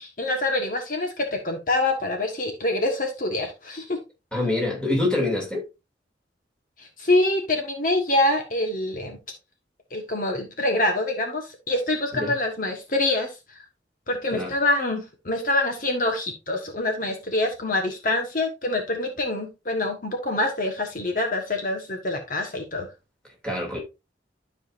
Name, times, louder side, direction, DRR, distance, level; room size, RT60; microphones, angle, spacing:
voice 1, 0.0-4.0 6.8-9.2 9.9-13.6 14.1-22.9, left 2 dB, 45° left, 1.4 m, -25 dB
voice 2, 4.3-5.6 12.1-12.3 14.3-14.5 23.4-23.8, left 2 dB, 5° left, 2.6 m, -25 dB
12.5 x 5.0 x 2.6 m
head